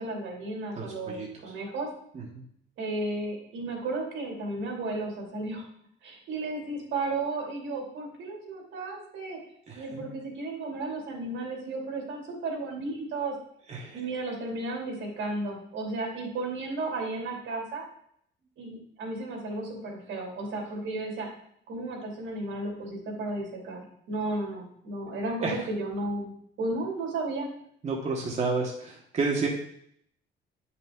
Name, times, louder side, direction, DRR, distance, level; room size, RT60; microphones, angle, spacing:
voice 1, 0.0-1.9 2.8-5.6 6.0-9.4 9.7-13.3 13.9-17.8 18.6-21.3 21.7-23.8 24.1-27.5, right 2 dB, 80° right, 0 dB, 2.6 m, -34 dB
voice 2, 0.8-1.3 2.1-2.4 9.7-10.0 13.7-14.0 25.4-25.6 27.8-29.5, right 4 dB, 35° right, -1 dB, 1.2 m, -31 dB
8.8 x 5.8 x 3.7 m, 0.68 s
cardioid pair, 155°, 20 cm